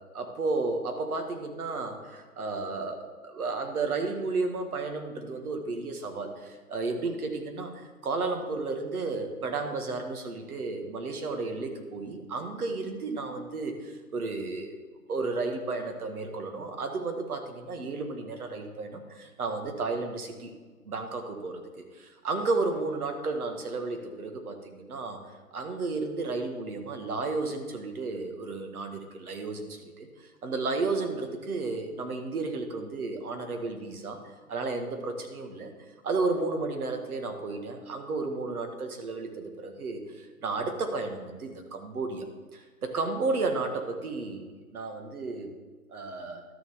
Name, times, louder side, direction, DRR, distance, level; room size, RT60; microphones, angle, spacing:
voice 1, 0.0-14.8 15.1-20.5 20.9-34.2 34.5-35.7 36.0-42.3 42.5-45.5 45.9-46.5, right 3 dB, 75° right, 5 dB, 1.7 m, -33 dB
12.0 x 6.9 x 3.7 m, 1.4 s
hypercardioid pair, 145°, 45 cm